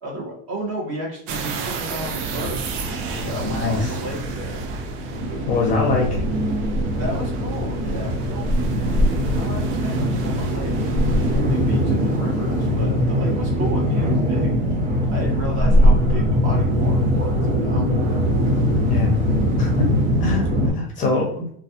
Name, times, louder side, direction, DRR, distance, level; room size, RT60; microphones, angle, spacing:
voice 1, 0.0-2.6 2.9-4.6 7.0-8.5 9.4-10.8 11.3-14.6 15.1-17.9, right 1 dB, 35° right, -2 dB, 1.1 m, -33 dB
sound 1, 1.3-11.4, right 5 dB, 85° right, 0.6 m, -33 dB
sound 2, 2.2-20.7, equal, 70° right, 1.0 m, -21 dB
voice 2, 3.5-3.9 5.5-6.2 18.9-19.1 19.6-19.9 20.2-20.4 20.7-21.5, left 4 dB, 20° left, -1 dB, 0.6 m, -22 dB
3.1 x 2.3 x 2.7 m, 0.64 s
cardioid pair, 180°, 36 cm